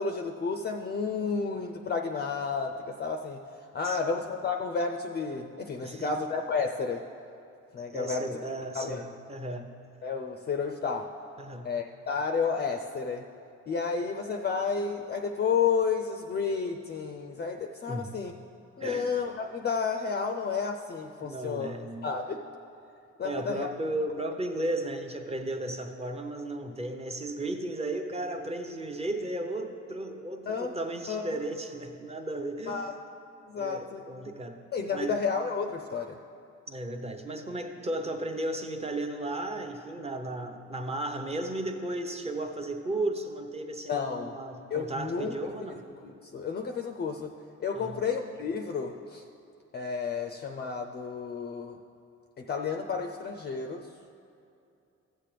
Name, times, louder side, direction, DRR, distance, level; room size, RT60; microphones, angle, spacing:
voice 1, 0.0-3.4 3.7-7.0 7.7-8.3 8.7-9.1 10.0-11.1 11.6-13.2 13.7-18.3 18.8-21.8 22.0-22.4 23.2-23.7 30.5-30.7 31.1-31.2 32.7-32.9 33.5-34.0 34.7-36.2 43.9-44.3 44.7-45.3 46.0-47.3 47.6-49.2 49.7-51.8 52.4-53.9, left 5 dB, 35° left, 4 dB, 0.5 m, -31 dB
voice 2, 5.8-6.1 7.9-9.7 11.4-11.7 17.9-18.2 18.8-19.1 21.2-22.1 23.2-32.9 33.5-34.6 34.9-35.2 36.7-45.8 47.7-48.0, right 1 dB, 20° right, 4 dB, 0.8 m, -35 dB
15.0 x 7.5 x 3.3 m, 2.6 s
cardioid pair, 90°, 30 cm